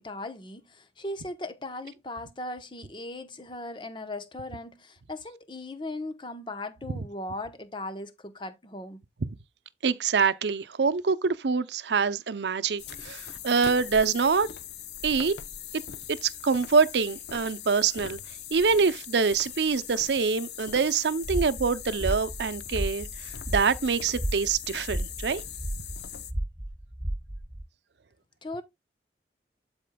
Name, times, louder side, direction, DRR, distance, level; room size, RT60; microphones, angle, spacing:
voice 1, 0.0-9.0 28.4-28.6, left 2 dB, 25° left, 0.8 m, -38 dB
voice 2, 9.8-14.5 15.0-15.3 16.1-18.2 18.5-25.4, right 5 dB, 80° right, 0.6 m, -25 dB
sound 1, 12.8-26.3, left 9 dB, 75° left, 0.7 m, -41 dB
sound 2, 21.2-27.6, right 1 dB, 20° right, 2.7 m, -34 dB
12.5 x 4.4 x 2.2 m
head